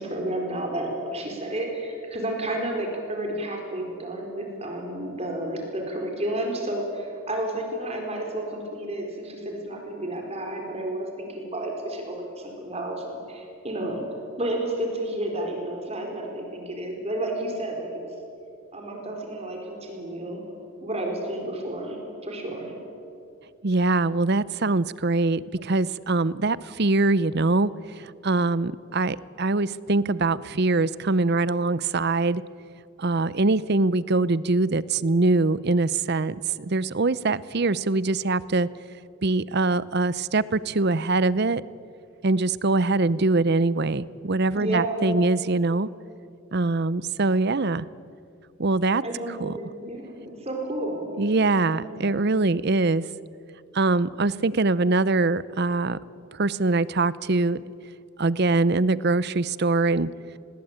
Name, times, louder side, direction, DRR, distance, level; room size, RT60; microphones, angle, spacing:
voice 1, 0.0-14.0 14.4-17.9 18.7-20.4 20.8-22.7 44.5-45.2 49.0-51.0 51.7-52.4, right 1 dB, 30° right, 2 dB, 4.4 m, -31 dB
voice 2, 23.6-32.4 33.0-38.7 39.2-41.6 42.2-45.9 46.5-47.9 48.6-49.0 49.4-49.5 51.2-53.0 53.7-56.0 56.3-57.6 58.2-60.1, right 3 dB, 45° right, 18 dB, 0.7 m, -23 dB
28.0 x 21.0 x 8.9 m, 2.5 s
head